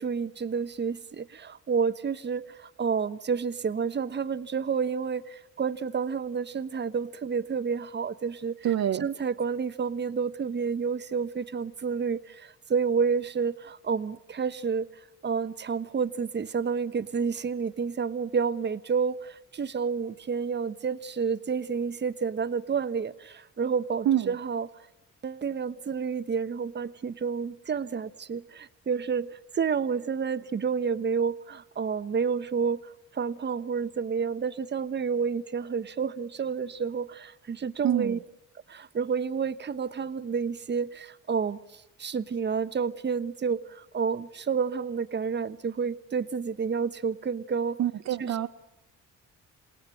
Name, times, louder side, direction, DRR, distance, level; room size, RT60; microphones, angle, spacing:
voice 1, 0.0-8.6 9.0-14.9 15.2-24.7 25.2-29.3 29.5-32.8 33.1-38.2 38.7-47.8 48.2-48.5, right 6 dB, 35° right, 12 dB, 1.2 m, -30 dB
voice 2, 8.6-9.0 24.1-24.3 37.8-38.2 47.8-48.5, right 11 dB, 60° right, 8 dB, 0.9 m, -26 dB
28.0 x 19.0 x 8.8 m, 0.99 s
cardioid pair, 90°, 30 cm